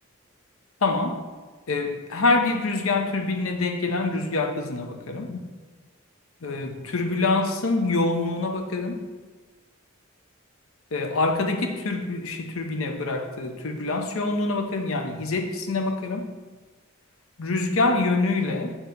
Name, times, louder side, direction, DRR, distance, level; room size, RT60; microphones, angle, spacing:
voice 1, 0.8-1.2 1.7-5.5 6.4-9.0 10.9-16.3 17.4-18.8, left 3 dB, 85° left, 5 dB, 0.7 m, -25 dB
7.1 x 2.9 x 5.2 m, 1.3 s
head